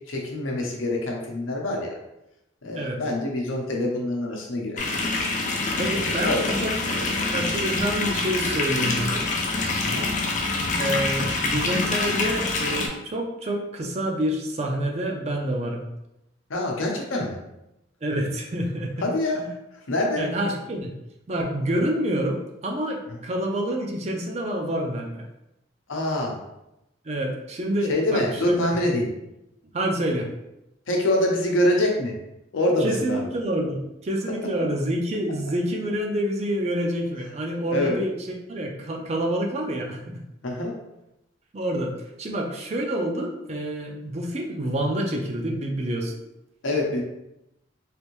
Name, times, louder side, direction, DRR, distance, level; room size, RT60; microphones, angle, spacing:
voice 1, 0.1-2.0 2.6-4.9 5.7-5.8 6.2-6.4 7.0-7.6 9.8-10.1 16.5-17.4 19.0-19.5 19.7-20.3 23.1-23.2 25.9-26.4 27.9-29.1 30.9-32.1 32.5-33.3 37.7-38.0 40.4-40.7 46.6-47.0, left 1 dB, 90° left, 0 dB, 0.7 m, -25 dB
sound 1, 4.8-12.9, left 3 dB, 40° left, 0.4 m, -26 dB
voice 2, 5.8-6.7 7.3-9.3 10.8-15.9 18.0-19.1 20.2-20.9 21.3-25.2 27.0-28.7 29.7-30.3 32.8-40.2 41.5-41.9 42.2-46.2, right 1 dB, 35° right, 1 dB, 0.4 m, -27 dB
3.3 x 2.6 x 3.0 m, 0.88 s
head